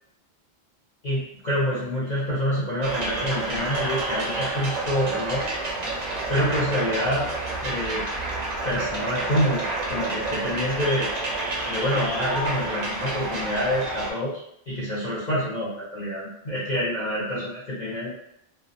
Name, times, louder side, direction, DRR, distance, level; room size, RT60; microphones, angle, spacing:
voice 1, 1.0-5.4 6.3-7.3 7.6-8.0 8.6-11.1 11.7-14.4 14.7-18.1, equal, 45° left, -8 dB, 0.7 m, -27 dB
sound 1, 2.8-14.1, right 2 dB, 50° right, 0.5 m, -29 dB
2.2 x 2.0 x 2.7 m, 0.78 s
omnidirectional pair, 1.1 m